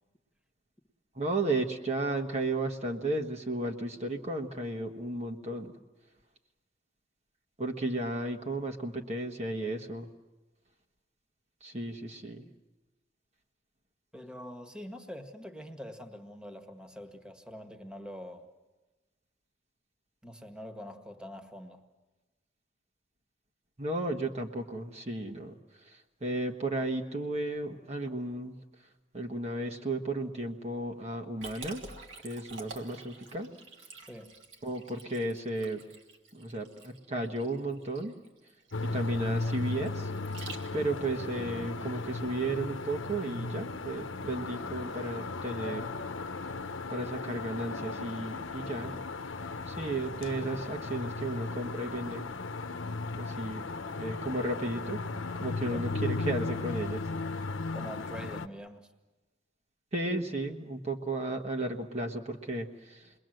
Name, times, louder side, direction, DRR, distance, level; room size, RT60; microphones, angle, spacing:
voice 1, 1.1-5.8 7.6-10.1 11.6-12.4 23.8-28.6 29.1-31.8 32.2-33.5 34.6-35.8 36.3-38.1 38.8-40.1 40.7-45.9 46.9-49.0 49.7-52.3 53.1-53.7 53.9-55.0 55.4-57.0 59.9-63.1, right 2 dB, 35° right, 2 dB, 1.4 m, -34 dB
voice 2, 14.1-18.5 20.2-21.8 34.0-34.3 55.7-55.9 57.7-58.9, equal, 5° right, 6 dB, 1.7 m, -44 dB
Liquid, 31.4-41.0, right 3 dB, 80° right, 3.2 m, -48 dB
sound 1, 38.7-58.5, left 3 dB, 85° left, 0.9 m, -36 dB
28.5 x 21.5 x 7.8 m, 1.2 s
head